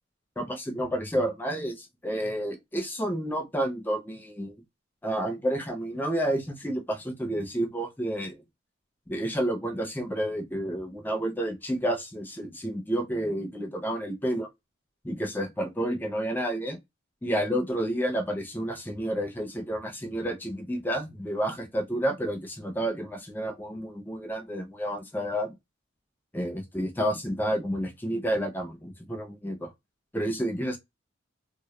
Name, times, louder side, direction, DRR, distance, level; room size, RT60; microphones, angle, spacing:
voice 1, 0.4-4.5 5.0-8.4 9.1-14.5 15.0-16.8 17.2-25.5 26.3-29.7 30.1-30.8, right 1 dB, 10° left, 0.4 m, -30 dB
2.0 x 2.0 x 2.9 m
head